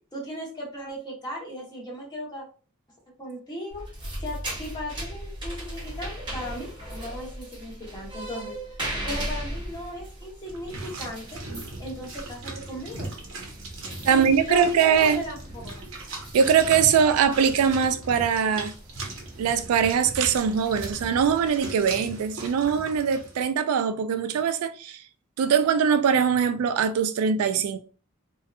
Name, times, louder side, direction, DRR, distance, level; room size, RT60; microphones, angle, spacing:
voice 1, 0.1-2.4 3.2-3.8 4.2-8.6 9.0-11.4 11.8-13.1 14.1-15.4, equal, 20° left, 0.8 m, -37 dB
sound 1, 3.7-21.8, right 1 dB, 20° right, 0.9 m, -39 dB
Stirring Mud in Bucket by Hand - Foley, 10.5-23.4, right 2 dB, 65° right, 0.8 m, -39 dB
voice 2, 14.0-15.2 16.3-18.7 19.4-25.0 25.4-27.8, right 7 dB, 80° right, 0.3 m, -22 dB
2.7 x 2.3 x 2.3 m
head